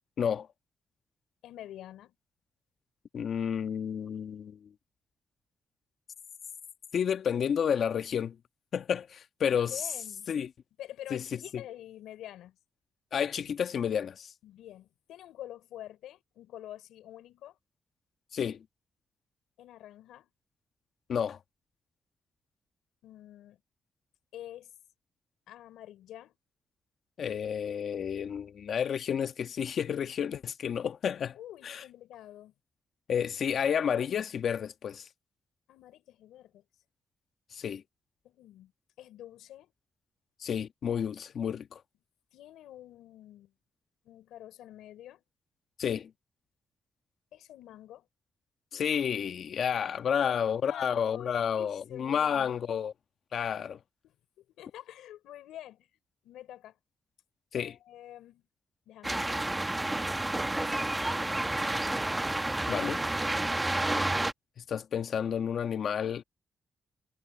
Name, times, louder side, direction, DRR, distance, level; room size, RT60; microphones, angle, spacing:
voice 1, 0.2-0.5 3.1-4.7 6.9-8.4 8.7-9.8 10.3-10.5 11.1-11.2 11.5-11.6 13.1-14.3 18.3-18.6 21.1-21.4 27.2-31.4 31.6-31.8 33.1-35.1 37.5-37.8 40.4-41.8 45.8-46.1 48.7-52.9 53.3-53.8 57.5-57.7 62.7-63.0 64.6-66.2, left 8 dB, 65° left, 1.2 m, -30 dB
voice 2, 1.4-2.1 9.4-10.3 10.8-12.6 14.4-17.6 19.6-20.3 23.0-23.6 24.3-24.8 25.5-26.4 31.3-32.5 35.7-36.6 38.2-38.7 39.0-39.7 42.3-43.5 44.0-45.2 47.3-48.1 50.0-52.6 54.0-55.9 56.2-56.8 57.5-58.4 58.9-59.5 60.5-61.5, left 12 dB, 90° left, 4.7 m, -47 dB
sound 1, 59.0-64.3, right 2 dB, 15° right, 1.1 m, -30 dB
cardioid pair, 70°, 0 cm